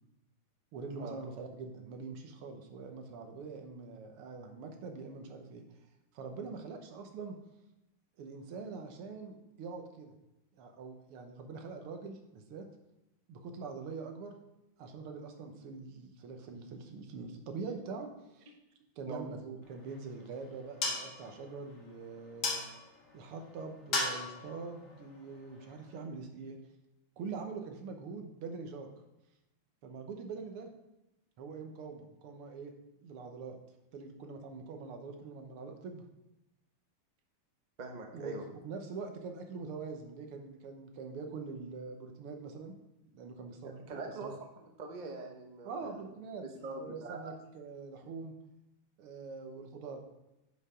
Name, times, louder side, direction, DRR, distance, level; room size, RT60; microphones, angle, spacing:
voice 1, 0.7-5.6 6.1-7.4 8.2-10.2 10.6-12.7 13.3-14.4 14.8-18.5 19.0-22.6 23.1-26.6 27.2-28.9 29.8-30.7 31.4-32.7 33.0-33.6 33.9-36.1 38.1-38.4 38.6-42.7 43.0-44.4 45.6-48.3 49.0-50.0, right 4 dB, 85° right, 4 dB, 1.9 m, -44 dB
sound 1, 19.6-26.1, left 2 dB, 40° left, 1.5 m, -39 dB
voice 2, 37.8-38.4 43.9-46.0 46.6-47.3, right 3 dB, 40° right, 3 dB, 0.6 m, -43 dB
9.9 x 5.7 x 3.7 m, 0.92 s
omnidirectional pair, 2.4 m